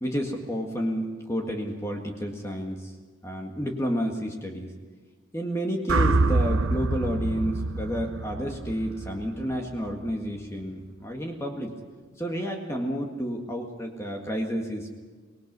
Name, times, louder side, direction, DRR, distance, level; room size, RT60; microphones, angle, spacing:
voice 1, 0.0-2.9 3.2-4.7 5.3-11.7 12.2-15.0, equal, 15° left, 1 dB, 1.8 m, -30 dB
sound 1, 5.9-10.1, right 2 dB, 70° right, 0.8 m, -26 dB
25.0 x 19.5 x 5.4 m, 1.4 s
head